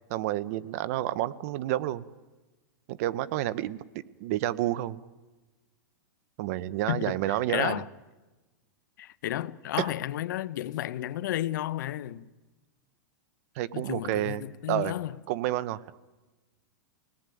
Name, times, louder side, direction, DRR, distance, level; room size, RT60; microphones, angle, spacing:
voice 1, 0.1-2.0 2.9-3.8 4.2-5.0 6.4-7.8 9.8-9.9 13.6-14.4 14.7-14.9 15.3-15.8, right 14 dB, 50° right, 1.0 m, -29 dB
voice 2, 6.9-7.9 9.0-12.3 13.7-15.2, left 13 dB, 65° left, 0.9 m, -32 dB
27.5 x 19.0 x 9.3 m
supercardioid pair, 150°, 11 cm